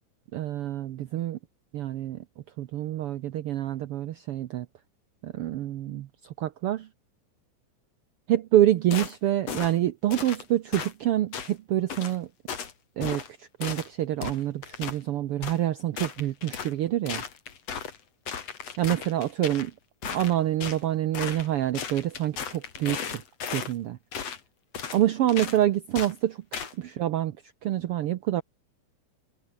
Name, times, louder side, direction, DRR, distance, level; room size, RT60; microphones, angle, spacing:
voice 1, 0.3-1.4 1.7-2.2 2.6-4.7 5.2-6.1 6.4-6.9 8.3-12.3 13.0-17.2 18.8-19.7 20.1-23.0 23.5-24.0 24.9-26.4 26.8-27.4 27.6-28.4, right 13 dB, 85° right, 1.2 m, -27 dB
sound 1, 8.9-9.2 9.5-9.7 10.1-10.4 10.7-10.9 11.3-11.5 11.9-12.2 12.5-12.7 13.0-13.3 13.6-13.9 14.2-15.0 15.4-15.6 16.0-16.7 17.1-18.0 18.3-19.7 20.0-20.8 21.1-21.5 21.7-23.7 24.1-24.4 24.7-25.0 25.3-25.6 25.9-26.1 26.5-26.7, left 7 dB, 55° left, 3.6 m, -35 dB
omnidirectional pair, 3.6 m